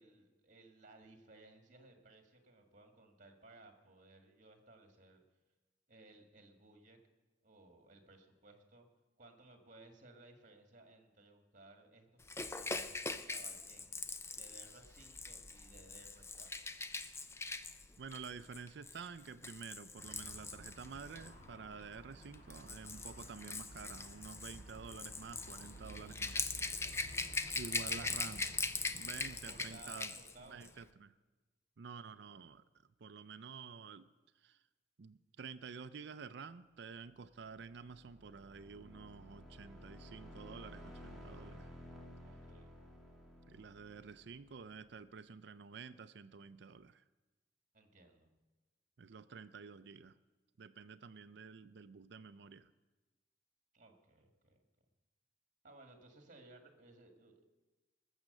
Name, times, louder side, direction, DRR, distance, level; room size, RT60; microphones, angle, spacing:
voice 1, 0.0-5.2 5.9-7.0 7.4-8.9 9.2-14.1 14.4-16.7 26.9-27.4 29.3-30.8 42.2-42.7 47.7-48.3 53.7-54.6 55.6-57.4, right 2 dB, 45° right, 4 dB, 1.8 m, -60 dB
Rattle / Rattle (instrument), 12.3-21.3 22.2-30.3 30.6-30.8, left 3 dB, 15° left, 0.5 m, -42 dB
voice 2, 18.0-26.9 27.5-28.5 28.9-30.2 30.5-31.1 31.8-32.6 33.0-34.1 34.4-34.6 35.0-41.7 43.5-47.0 49.0-50.2 50.6-52.7, right 5 dB, 60° right, 13 dB, 0.5 m, -50 dB
Traffic noise roadway noise, 20.0-29.8, equal, 40° left, 3.4 m, -54 dB
sound 1, 37.3-45.0, equal, ahead, 2.3 m, -55 dB
20.0 x 7.4 x 6.6 m, 1.2 s
head